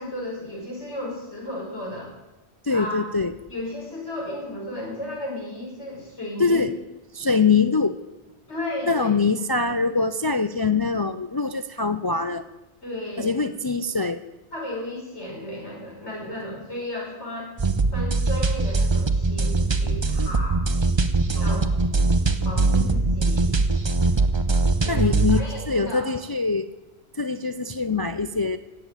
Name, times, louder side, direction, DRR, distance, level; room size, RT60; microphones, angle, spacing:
voice 1, 0.0-2.1 2.7-3.1 3.5-6.6 8.5-9.1 12.8-13.4 14.5-17.5 17.9-20.6 21.3-21.6 22.4-23.6 24.8-26.1, left 1 dB, 80° left, -3 dB, 5.2 m, -34 dB
voice 2, 2.6-3.3 6.4-6.7 7.1-8.0 8.9-12.4 13.2-14.2 24.9-26.7 27.2-28.6, left 4 dB, 40° left, 10 dB, 0.3 m, -23 dB
sound 1, 17.6-25.4, right 3 dB, 30° right, 0.7 m, -22 dB
16.5 x 7.1 x 9.0 m, 1.0 s
omnidirectional pair, 1.1 m